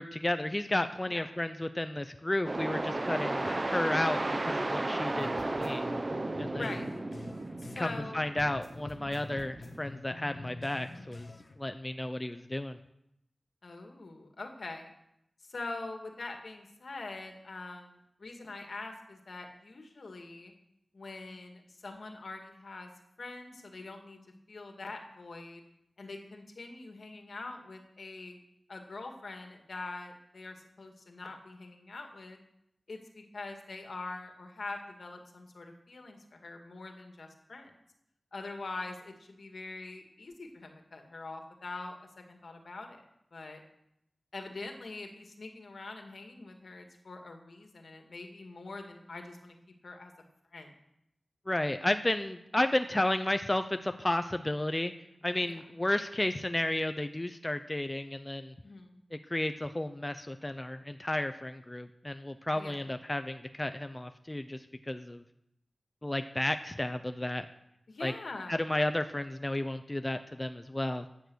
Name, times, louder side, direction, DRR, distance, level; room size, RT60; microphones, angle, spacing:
voice 1, 0.0-5.9 6.4-6.7 7.8-11.3 11.6-12.8 51.5-54.9 55.2-58.5 59.3-64.6 64.9-65.2 66.0-67.5 68.0-68.1 68.5-71.1, left 1 dB, 25° left, 8 dB, 0.8 m, -32 dB
sound 1, 2.4-9.9, right 2 dB, 45° right, 1.0 m, -34 dB
voice 2, 3.2-3.6 6.5-6.9 7.6-8.2 9.0-9.3 13.6-14.9 15.5-20.5 20.9-22.9 23.2-24.2 24.5-25.6 26.0-28.4 28.7-32.4 32.9-37.7 38.3-43.1 43.3-43.6 44.3-49.6 49.8-50.1 50.5-50.8 55.4-55.6 58.6-59.0 62.5-62.8 67.9-68.6, left 3 dB, 75° left, 4 dB, 2.2 m, -44 dB
sound 2, 5.2-8.1 8.4-11.6, left 2 dB, 55° left, 1.4 m, -46 dB
14.5 x 9.4 x 6.4 m, 0.81 s
cardioid pair, 45°, 0 cm